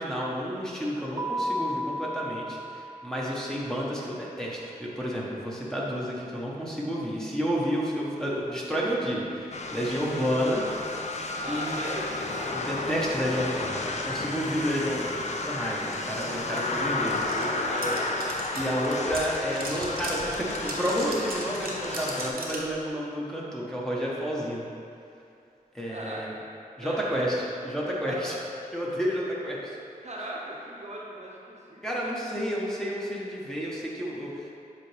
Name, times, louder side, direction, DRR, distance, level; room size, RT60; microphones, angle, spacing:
voice 1, 0.0-10.6 11.5-11.8 12.5-17.2 18.5-24.7 25.7-26.3 26.8-28.4 28.7-29.6 31.8-34.5, equal, 5° left, -5 dB, 1.2 m, -30 dB
Keyboard (musical), 1.2-3.7, equal, 30° right, 0.6 m, -33 dB
sound 1, 9.5-22.3, left 2 dB, 50° left, 0.6 m, -32 dB
voice 2, 9.8-10.1 11.4-12.1 17.3-18.1 25.9-26.2 26.8-27.3 28.1-28.4 30.0-31.8, right 1 dB, 50° right, -3 dB, 0.9 m, -38 dB
sound 2, 15.9-16.0 16.2-22.7, right 2 dB, 80° right, 0.9 m, -38 dB
7.4 x 4.2 x 3.4 m, 2.5 s
cardioid pair, 60°, 15 cm